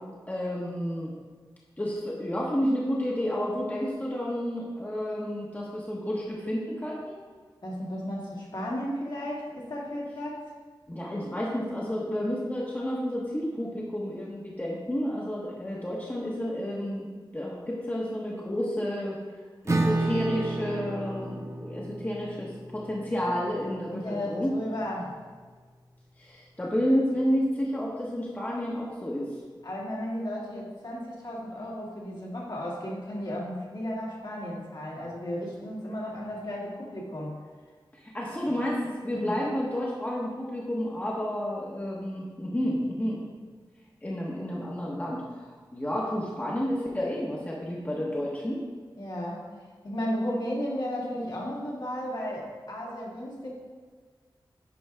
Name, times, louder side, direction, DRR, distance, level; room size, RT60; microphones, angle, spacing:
voice 1, 0.3-1.1 1.8-7.2 10.9-17.1 17.3-19.2 19.6-24.5 26.2-29.4 37.9-43.2 44.0-48.6, equal, 20° left, -4 dB, 1.2 m, -30 dB
voice 2, 7.6-10.4 23.9-25.1 29.6-37.4 39.1-39.3 49.0-49.5 49.8-53.5, equal, 55° left, -5 dB, 2.1 m, -34 dB
Acoustic guitar / Strum, 19.7-25.1, right 2 dB, 35° right, 0.7 m, -33 dB
10.0 x 4.7 x 3.6 m, 1.5 s
wide cardioid pair, 75°, 8 cm